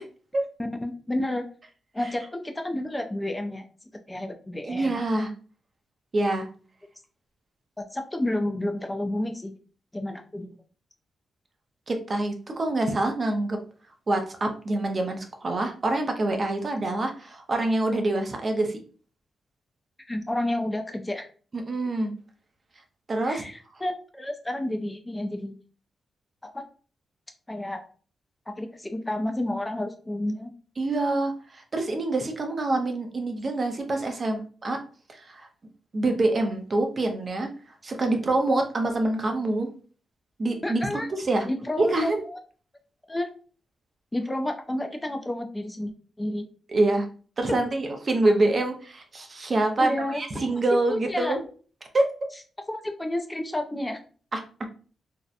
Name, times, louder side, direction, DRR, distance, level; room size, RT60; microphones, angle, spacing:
voice 1, 0.8-1.4 1.9-3.6 4.1-5.0 7.8-9.5 9.9-10.5 20.1-21.3 23.2-25.5 26.5-26.6 27.5-27.8 28.6-30.5 40.6-41.1 41.4-42.3 43.1-43.3 44.1-45.9 46.2-46.4 49.8-50.2 50.9-51.4 52.7-54.0, left 1 dB, 15° left, 5 dB, 0.3 m, -30 dB
voice 2, 4.6-5.3 6.1-6.5 11.9-13.6 14.1-18.8 21.5-22.1 23.1-23.4 30.8-34.8 35.1-35.5 35.9-37.5 37.8-39.7 40.4-41.5 41.8-42.2 46.7-47.1 47.4-51.4 51.9-52.1 54.3-54.4, right 2 dB, 40° right, 4 dB, 0.5 m, -26 dB
2.6 x 2.1 x 2.4 m, 0.40 s
cardioid pair, 85°, 0 cm